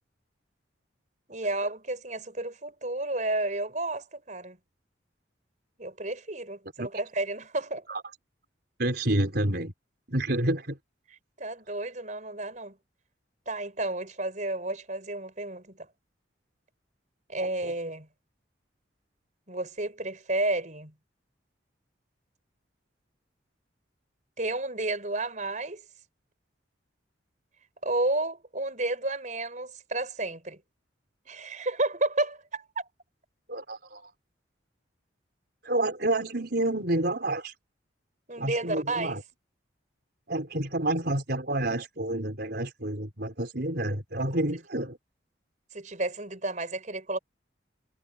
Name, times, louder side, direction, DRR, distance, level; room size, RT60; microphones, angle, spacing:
voice 1, 1.3-4.6 5.8-7.9 11.4-12.8 13.5-15.9 17.3-18.1 19.5-20.9 24.4-25.8 27.8-30.6 31.3-32.9 38.3-39.2 45.7-47.2, right 2 dB, 40° right, 5.4 m, -31 dB
voice 2, 8.8-9.7 10.1-10.8 17.4-17.7 33.5-34.1 35.6-37.5 38.4-39.2 40.3-45.0, right 1 dB, 55° right, 4.8 m, -29 dB
head